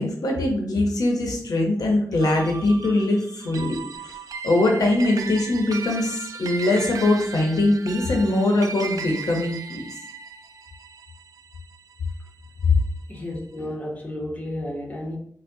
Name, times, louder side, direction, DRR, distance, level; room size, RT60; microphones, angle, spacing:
voice 1, 0.0-3.8 4.0-4.2 4.4-9.8 12.6-12.7, left 2 dB, 70° left, 1 dB, 0.7 m, -22 dB
sound 1, 2.2-12.8, right 5 dB, 65° right, 0.3 m, -37 dB
voice 2, 13.1-15.2, left 1 dB, 25° left, -2 dB, 0.8 m, -32 dB
4.5 x 2.1 x 2.6 m, 0.64 s
wide cardioid pair, 110°, 6 cm